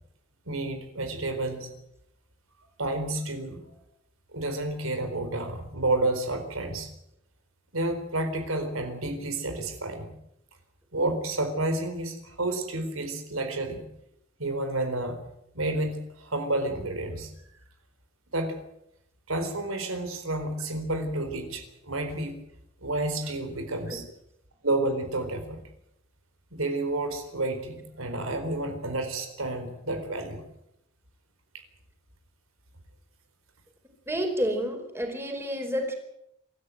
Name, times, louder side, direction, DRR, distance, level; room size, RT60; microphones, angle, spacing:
voice 1, 0.5-1.7 2.8-3.8 4.3-6.9 7.7-10.1 10.9-13.8 14.4-15.2 15.5-17.3 18.3-18.6 19.3-22.4 22.8-24.1 24.6-25.6 26.5-30.4, right 2 dB, 85° right, 6 dB, 4.3 m, -30 dB
voice 2, 34.1-35.9, equal, 10° right, 4 dB, 4.5 m, -29 dB
26.0 x 14.0 x 9.2 m, 0.79 s
head